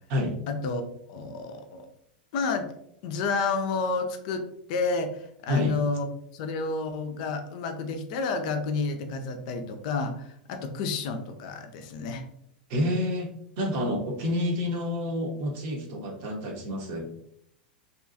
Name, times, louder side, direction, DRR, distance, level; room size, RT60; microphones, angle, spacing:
voice 1, 0.5-1.9 2.3-2.7 3.0-6.1 6.3-12.2, left 4 dB, 55° left, 6 dB, 0.4 m, -30 dB
voice 2, 12.7-13.3 13.6-17.1, left 1 dB, 50° right, 1 dB, 0.8 m, -28 dB
2.7 x 2.3 x 2.5 m, 0.71 s
figure-of-eight pair, 90°, 5 cm